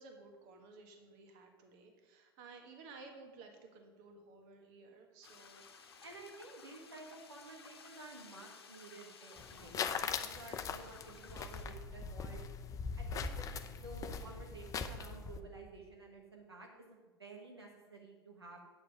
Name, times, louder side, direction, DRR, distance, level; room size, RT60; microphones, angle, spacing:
voice 1, 0.0-6.0, right 3 dB, 50° right, 3 dB, 1.6 m, -56 dB
sound 1, 5.2-11.6, left 6 dB, 75° left, 1.0 m, -57 dB
voice 2, 6.0-12.4 13.0-18.6, right 2 dB, 85° right, 0 dB, 1.3 m, -52 dB
sound 2, 9.4-15.4, left 6 dB, 25° left, 0.6 m, -41 dB
9.6 x 6.7 x 5.1 m, 1.3 s
figure-of-eight pair, 85°, 13 cm